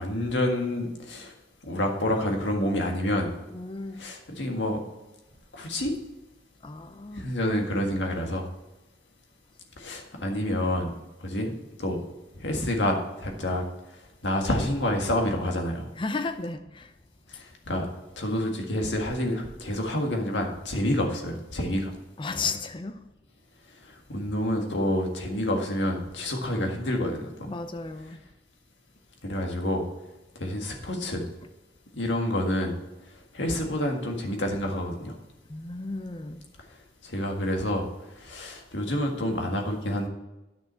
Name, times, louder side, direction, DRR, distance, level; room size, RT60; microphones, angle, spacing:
voice 1, 0.0-1.3 1.7-3.3 3.9-4.8 5.5-5.9 7.1-8.5 9.8-10.9 11.2-12.0 12.4-13.6 14.2-15.9 17.3-17.9 18.2-21.9 23.9-27.5 29.2-29.8 30.4-31.2 31.9-32.7 33.3-35.2 37.0-37.8 38.2-40.1, left 1 dB, 80° left, 1.8 m, -28 dB
voice 2, 3.5-4.0 6.6-7.3 10.2-10.4 16.0-16.9 22.2-23.0 27.5-28.2 31.4-31.5 35.5-36.4, left 3 dB, 30° left, 0.6 m, -34 dB
10.5 x 6.3 x 4.3 m
head